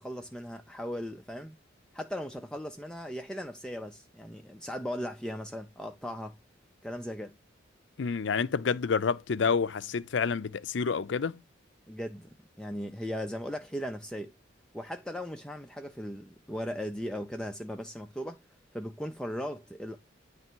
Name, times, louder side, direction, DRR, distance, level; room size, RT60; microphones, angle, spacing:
voice 1, 0.0-1.6 1.9-6.3 6.8-7.3 11.9-12.3 12.6-14.3 14.7-18.4 18.7-20.0, equal, 5° left, 0.4 m, -37 dB
voice 2, 8.0-11.4, left 5 dB, 65° left, 0.5 m, -28 dB
9.3 x 3.3 x 4.4 m
head